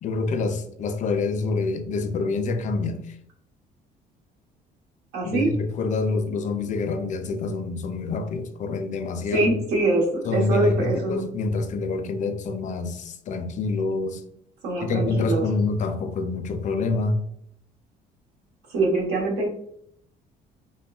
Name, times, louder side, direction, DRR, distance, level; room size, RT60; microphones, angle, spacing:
voice 1, 0.0-3.1 5.2-9.5 10.2-14.2 14.8-17.2, left 3 dB, 45° left, 0.4 m, -26 dB
voice 2, 5.1-5.5 9.3-10.1 10.3-11.2 14.6-15.4 18.7-19.5, right 2 dB, 85° right, 1.0 m, -23 dB
3.5 x 2.1 x 2.3 m
cardioid pair, 110°, 17 cm